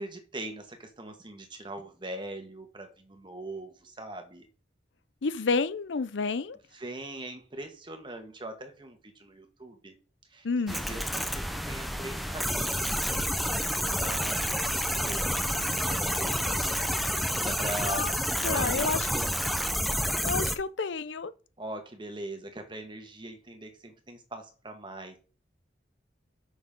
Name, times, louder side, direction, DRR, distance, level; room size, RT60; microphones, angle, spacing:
voice 1, 0.0-4.5 6.7-9.9 10.3-16.6 17.2-18.1 18.4-19.3 21.6-25.2, right 1 dB, 25° right, 1.5 m, -42 dB
voice 2, 5.2-6.6 10.4-10.8 17.9-18.1 18.4-19.1 20.2-21.3, left 4 dB, 90° left, 0.6 m, -29 dB
sound 1, 10.7-20.6, equal, ahead, 0.7 m, -29 dB
8.9 x 6.3 x 3.7 m
head